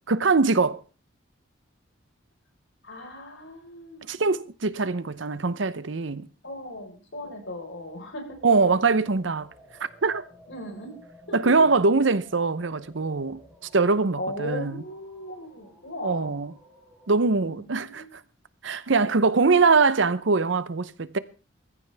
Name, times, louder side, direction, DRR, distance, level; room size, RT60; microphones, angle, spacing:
voice 1, 0.1-0.8 4.1-6.3 8.4-9.5 10.0-10.2 11.3-13.4 13.7-14.8 16.0-16.5 17.1-18.2 18.6-21.2, right 4 dB, 70° right, 0.8 m, -22 dB
voice 2, 2.8-4.2 6.4-8.4 10.5-10.9 11.3-11.7 14.2-16.3 17.5-18.1, left 1 dB, 70° left, 4.5 m, -37 dB
sound 1, 8.3-17.5, equal, 5° right, 4.0 m, -53 dB
20.5 x 14.5 x 3.5 m
head